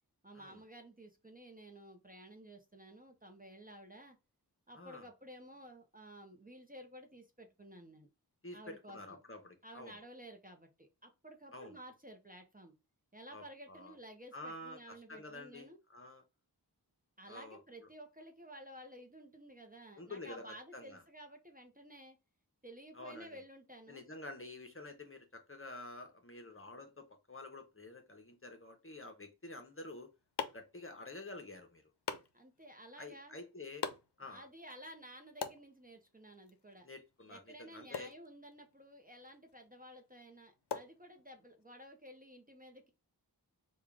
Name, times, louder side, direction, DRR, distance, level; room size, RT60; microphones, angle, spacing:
voice 1, 0.2-4.2 4.7-8.1 8.5-9.2 9.6-12.7 13.1-15.8 17.2-22.2 22.6-24.0 32.3-33.4 34.2-36.9 37.3-42.9, right 1 dB, 20° right, 0.8 m, -53 dB
voice 2, 4.7-5.1 8.4-9.9 11.5-11.8 13.3-13.9 14.3-14.8 15.1-16.2 17.3-17.6 19.9-20.4 20.7-21.0 22.9-23.4 23.9-30.1 30.5-31.8 33.0-33.8 34.2-34.4 36.8-38.1, left 2 dB, 30° left, 0.9 m, -49 dB
sound 1, 29.7-41.6, left 6 dB, 80° left, 0.6 m, -48 dB
3.6 x 2.4 x 3.4 m
wide cardioid pair, 40°, 40 cm